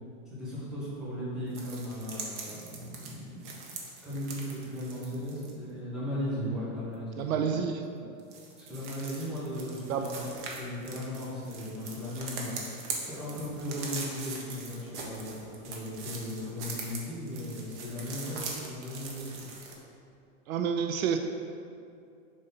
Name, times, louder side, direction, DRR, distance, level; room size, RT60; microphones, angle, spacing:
voice 1, 0.2-3.5 4.0-7.6 8.7-19.4, left 1 dB, ahead, -11 dB, 1.5 m, -37 dB
sound 1, 1.5-5.5 8.2-19.7, right 4 dB, 55° right, 1.2 m, -41 dB
voice 2, 7.2-8.2 9.9-10.1 20.5-21.2, right 7 dB, 75° right, 6 dB, 0.6 m, -29 dB
5.1 x 4.0 x 5.6 m, 2.5 s
supercardioid pair, 160°, 42 cm